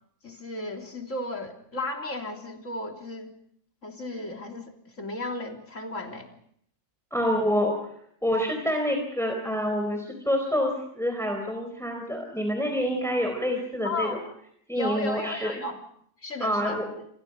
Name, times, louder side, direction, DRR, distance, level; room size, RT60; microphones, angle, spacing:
voice 1, 0.2-3.3 3.8-6.3 13.8-14.2 14.7-15.8 16.2-16.8, left 2 dB, 55° left, 2 dB, 3.7 m, -34 dB
voice 2, 7.1-7.8 8.2-14.2 14.7-15.5 16.4-16.8, equal, ahead, 3 dB, 4.3 m, -27 dB
27.5 x 27.0 x 5.2 m, 0.67 s
omnidirectional pair, 1.5 m